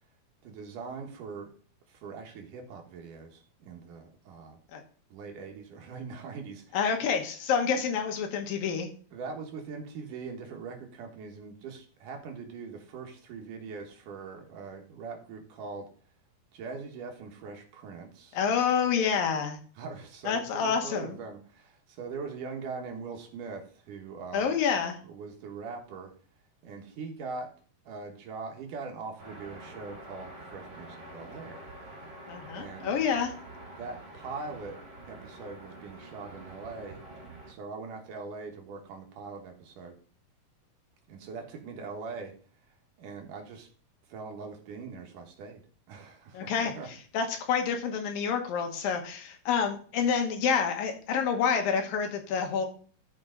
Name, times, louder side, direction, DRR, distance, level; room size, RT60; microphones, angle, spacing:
voice 1, 0.4-1.5 1.9-4.6 5.1-6.8 9.1-15.9 16.5-18.4 19.8-24.6 25.0-26.1 26.6-27.5 27.8-31.7 32.5-33.0 33.8-37.0 37.5-40.0 41.1-42.3 42.7-43.7 44.1-45.6 45.9-46.9, right 4 dB, 70° right, 2 dB, 2.8 m, -42 dB
voice 2, 6.7-8.9 18.3-19.6 20.2-21.2 24.3-25.0 32.3-33.3 46.3-52.7, left 6 dB, 80° left, 4 dB, 3.0 m, -28 dB
sound 1, 29.2-37.5, right 1 dB, 35° right, 3.8 m, -47 dB
12.5 x 5.3 x 3.9 m, 0.43 s
omnidirectional pair, 4.0 m